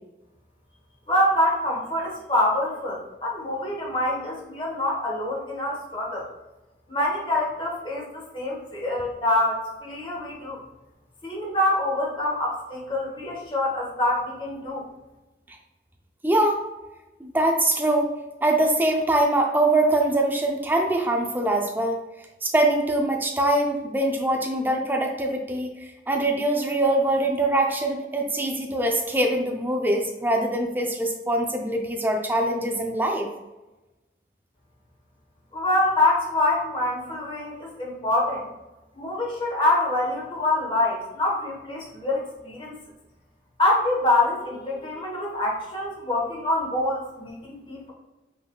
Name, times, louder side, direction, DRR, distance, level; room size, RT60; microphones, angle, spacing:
voice 1, 1.1-6.3 6.9-10.6 11.2-14.8 35.5-38.5 38.9-42.8 43.6-47.9, left 1 dB, 30° left, -3 dB, 1.2 m, -25 dB
voice 2, 16.2-16.6 17.2-18.1 18.4-22.0 22.4-33.3, right 1 dB, 10° right, 2 dB, 0.5 m, -23 dB
5.6 x 3.5 x 2.3 m, 1.0 s
head